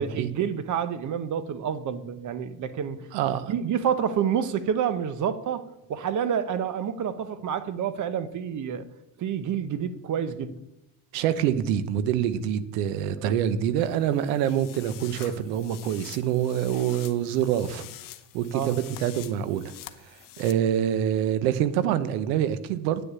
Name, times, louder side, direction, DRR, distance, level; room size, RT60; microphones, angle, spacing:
voice 1, 0.0-3.1 3.5-8.8 9.2-10.6 13.2-13.4 18.5-18.7, right 8 dB, 35° right, 1.0 m, -28 dB
voice 2, 3.1-3.5 11.1-17.9 18.3-19.7 20.0-23.0, right 10 dB, 75° right, 1.0 m, -26 dB
sound 1, 13.8-20.5, left 14 dB, 40° left, 0.8 m, -46 dB
9.3 x 6.8 x 8.3 m
supercardioid pair, 115°, 49 cm